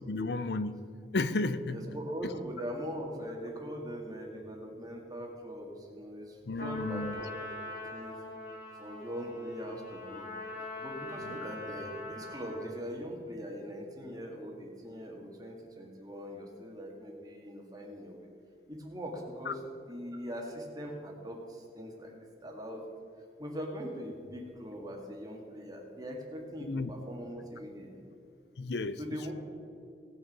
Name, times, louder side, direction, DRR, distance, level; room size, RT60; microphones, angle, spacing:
voice 1, 0.1-1.8 6.5-7.2 19.5-19.6 26.6-26.9 28.6-29.0, left 3 dB, 70° left, 13 dB, 0.6 m, -33 dB
voice 2, 1.7-7.3 7.6-8.2 8.7-10.3 10.8-18.3 18.7-19.6 19.9-22.2 22.4-22.8 23.4-28.1 29.0-29.3, equal, 20° right, 0 dB, 1.9 m, -41 dB
Trumpet, 6.6-12.8, left 2 dB, 55° left, 2.3 m, -43 dB
17.5 x 6.2 x 5.4 m, 2.5 s
head